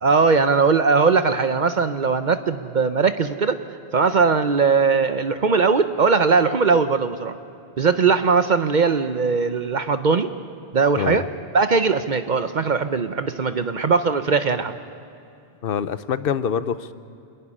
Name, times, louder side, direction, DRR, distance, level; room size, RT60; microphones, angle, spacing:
voice 1, 0.0-3.6 3.9-7.4 7.8-10.3 10.7-11.3 11.5-14.7, right 5 dB, 50° right, 10 dB, 0.8 m, -19 dB
voice 2, 15.6-16.9, left 7 dB, 65° left, 13 dB, 0.9 m, -25 dB
27.0 x 11.0 x 10.0 m, 2.6 s
omnidirectional pair, 1.0 m